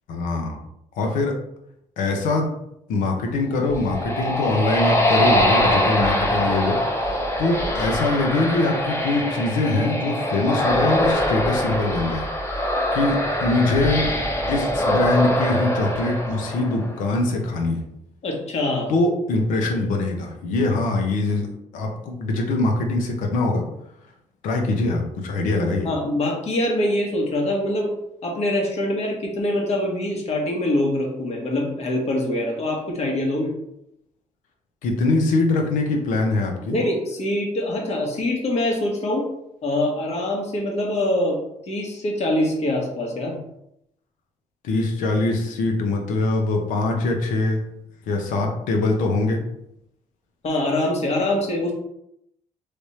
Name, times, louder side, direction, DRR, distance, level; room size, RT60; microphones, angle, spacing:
voice 1, 0.1-0.6 1.0-1.3 2.0-2.5 2.9-12.3 12.6-12.7 12.9-14.1 14.5-17.8 18.9-21.5 21.7-23.6 24.4-25.9 34.8-36.8 44.6-47.6 48.1-49.4, left 2 dB, 85° left, 2 dB, 0.9 m, -23 dB
sound 1, 3.5-17.1, equal, 20° left, 1.0 m, -23 dB
voice 2, 18.2-18.9 25.8-27.9 28.2-33.5 36.7-39.3 39.6-41.4 41.7-43.4 50.4-51.7, left 1 dB, 55° left, 0 dB, 1.4 m, -24 dB
3.4 x 3.2 x 4.2 m, 0.79 s
cardioid pair, 80°, 13 cm